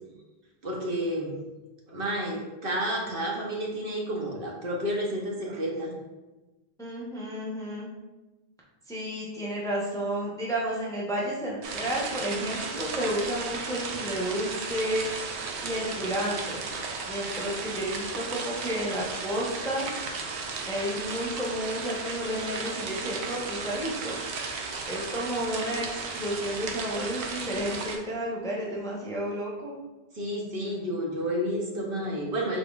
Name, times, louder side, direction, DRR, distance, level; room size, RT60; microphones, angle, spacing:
voice 1, 0.6-1.4 1.9-6.0 30.1-32.6, equal, 60° right, -2 dB, 1.0 m, -30 dB
voice 2, 6.8-7.9 8.9-15.1 15.6-16.6 17.1-19.9 20.7-24.2 24.9-29.7, equal, 5° left, -5 dB, 0.7 m, -31 dB
sound 1, 11.6-28.0, right 4 dB, 90° right, 0.9 m, -35 dB
5.7 x 3.7 x 2.4 m, 1.1 s
omnidirectional pair, 1.1 m